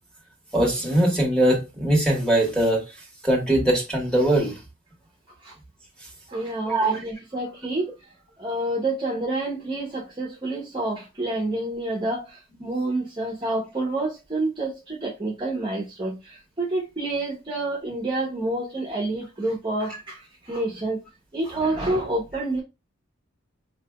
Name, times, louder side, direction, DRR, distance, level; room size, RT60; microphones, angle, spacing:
voice 1, 0.5-2.9 3.2-4.6 6.7-7.0, right 1 dB, 5° left, 1.6 m, -21 dB
voice 2, 6.3-7.9 8.4-21.0 21.3-22.6, right 2 dB, 20° right, 0.9 m, -28 dB
4.3 x 3.2 x 2.2 m
head